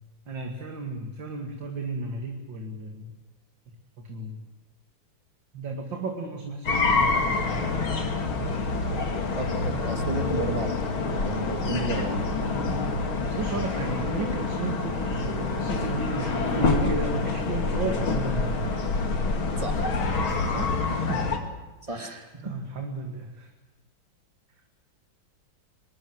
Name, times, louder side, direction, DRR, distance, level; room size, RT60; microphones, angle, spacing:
voice 1, 0.3-3.1 4.0-4.4 5.5-7.9 13.3-18.7 20.5-21.3 21.9-23.5, right 3 dB, 65° right, 3 dB, 2.9 m, -34 dB
sound 1, 6.7-21.4, left 3 dB, 85° left, 3.3 m, -27 dB
voice 2, 9.4-10.7 11.2-12.2 19.6-19.9 20.3-20.5 21.9-22.2, right 1 dB, 15° right, 4 dB, 2.8 m, -32 dB
24.5 x 21.0 x 7.9 m, 1.2 s
omnidirectional pair, 2.2 m